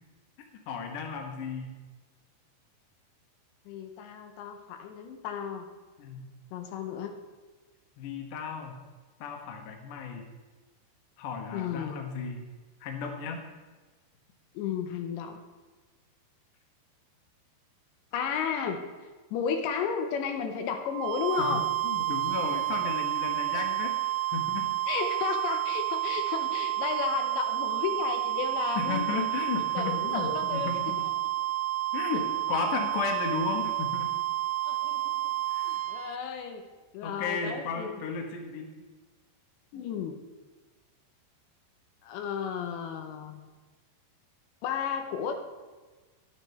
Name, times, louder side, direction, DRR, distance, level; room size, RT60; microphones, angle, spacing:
voice 1, 0.7-1.7 6.0-6.2 8.0-8.8 9.2-10.2 11.2-12.4 12.8-13.4 21.4-24.7 28.8-31.0 31.9-34.1 35.5-35.8 37.0-38.7, left 5 dB, 65° left, 3 dB, 2.1 m, -34 dB
voice 2, 3.7-5.7 6.5-7.2 11.5-12.0 14.5-15.4 18.1-18.9 19.3-21.7 23.5-23.6 24.9-29.3 29.7-30.8 34.6-35.1 35.6-36.6 36.9-38.0 39.7-40.2 42.0-43.4 44.6-45.4, left 7 dB, 85° left, 6 dB, 3.1 m, -33 dB
sound 1, 20.9-36.2, right 16 dB, 85° right, 2.8 m, -30 dB
11.5 x 9.1 x 4.4 m, 1.3 s
omnidirectional pair, 5.2 m